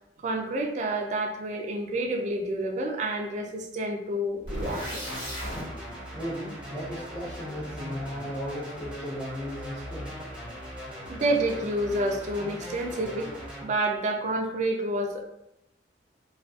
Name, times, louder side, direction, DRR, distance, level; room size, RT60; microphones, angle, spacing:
voice 1, 0.2-5.0 11.1-13.3 13.6-15.2, right 1 dB, 40° right, 2 dB, 0.3 m, -29 dB
sound 1, 4.4-5.6, equal, 80° left, 1.5 m, -35 dB
sound 2, 4.5-13.6, equal, 5° right, 0.7 m, -40 dB
voice 2, 6.1-11.2, equal, 35° left, -10 dB, 0.6 m, -37 dB
2.4 x 2.2 x 2.3 m, 0.84 s
head